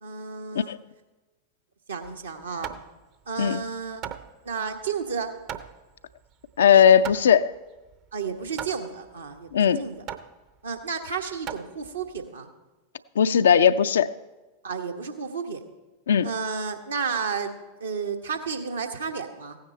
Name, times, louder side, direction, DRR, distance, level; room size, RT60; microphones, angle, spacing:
voice 1, 0.0-0.8 1.9-2.7 3.3-4.0 4.4-5.3 8.1-10.0 10.6-12.5 14.6-15.6 16.2-19.6, right 5 dB, 70° right, 1.2 m, -32 dB
Hammer, 2.0-12.3, right 9 dB, 40° right, 0.7 m, -41 dB
voice 2, 6.6-7.5 9.5-9.8 13.2-14.1 16.1-16.3, left 8 dB, 65° left, 0.4 m, -18 dB
16.0 x 9.4 x 4.3 m
figure-of-eight pair, 90°, 0 cm